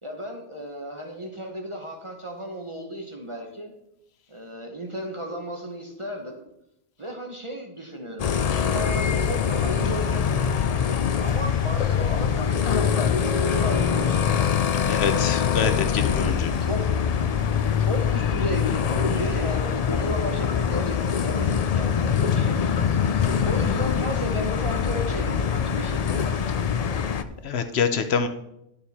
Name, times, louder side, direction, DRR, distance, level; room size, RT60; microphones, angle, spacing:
voice 1, 0.0-3.7 4.3-6.4 7.0-10.5 11.2-14.3 14.8-15.2 15.5-15.8 16.7-16.8 17.8-22.6 23.4-26.3, equal, 30° right, 2 dB, 1.1 m, -34 dB
sound 1, 8.2-27.2, left 7 dB, 50° left, 0.5 m, -23 dB
voice 2, 14.8-15.7 16.1-16.5 27.4-28.3, left 6 dB, 80° left, 9 dB, 1.0 m, -25 dB
11.0 x 6.8 x 4.2 m, 0.82 s
omnidirectional pair, 1.1 m